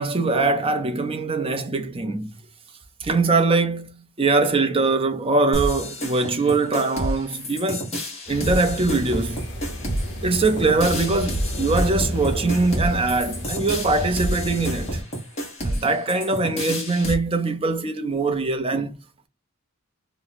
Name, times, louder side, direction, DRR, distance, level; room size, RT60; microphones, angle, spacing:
voice 1, 0.0-2.3 3.0-7.9 8.3-9.5 10.2-15.0 15.6-19.0, right 3 dB, 25° right, 0.5 m, -22 dB
sound 1, 5.5-17.1, equal, 30° left, 1.2 m, -30 dB
sound 2, 8.3-15.0, equal, 50° left, 1.1 m, -30 dB
2.8 x 2.2 x 4.0 m
head